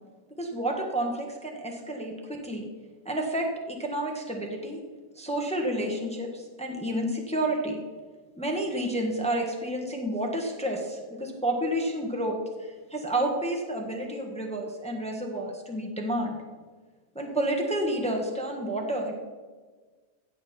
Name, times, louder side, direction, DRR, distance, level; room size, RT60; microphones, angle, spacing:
voice 1, 0.4-2.7 3.0-4.8 5.2-7.8 8.4-16.4 17.1-19.1, right 1 dB, 5° left, 1 dB, 1.4 m, -30 dB
15.5 x 7.7 x 4.4 m, 1.4 s
omnidirectional pair, 1.7 m